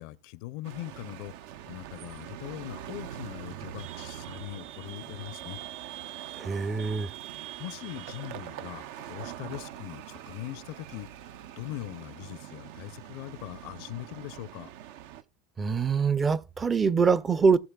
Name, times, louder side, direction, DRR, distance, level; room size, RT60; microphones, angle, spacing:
voice 1, 0.0-1.3 1.7-5.6 7.6-11.1 11.6-14.7, left 17 dB, 65° left, 0.5 m, -41 dB
sound 1, 0.6-15.2, right 11 dB, 75° right, 0.6 m, -43 dB
voice 2, 6.3-7.1 15.6-17.6, right 5 dB, 20° right, 0.5 m, -24 dB
18.0 x 6.4 x 2.3 m
supercardioid pair, 130°, 0 cm